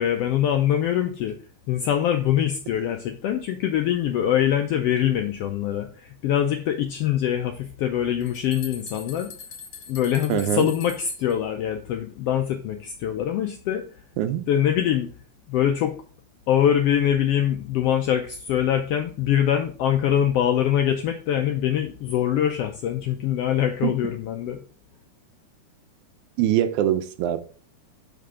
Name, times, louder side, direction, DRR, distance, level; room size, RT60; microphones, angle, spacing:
voice 1, 0.0-1.4 1.7-9.3 9.9-13.8 14.5-15.1 15.5-16.0 16.5-24.6, left 10 dB, 90° left, 1.4 m, -23 dB
sound 1, 7.8-7.9 8.2-11.3, left 4 dB, 45° left, 1.5 m, -42 dB
voice 2, 10.3-10.7 14.2-14.4 23.8-23.9 26.4-27.4, right 11 dB, 90° right, 2.1 m, -23 dB
6.7 x 5.3 x 3.7 m
omnidirectional pair, 3.3 m